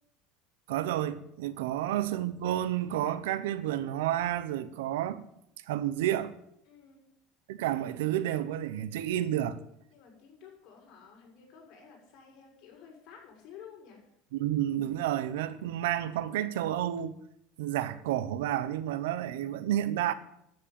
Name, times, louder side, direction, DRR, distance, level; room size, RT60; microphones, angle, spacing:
voice 1, 0.7-5.2 5.7-6.3 7.5-9.6 14.3-17.2 17.6-20.1, right 12 dB, 90° right, 0.9 m, -30 dB
voice 2, 6.6-7.0 9.9-14.1, left 7 dB, 55° left, 6.5 m, -52 dB
12.0 x 7.6 x 8.9 m
supercardioid pair, 125°, 0 cm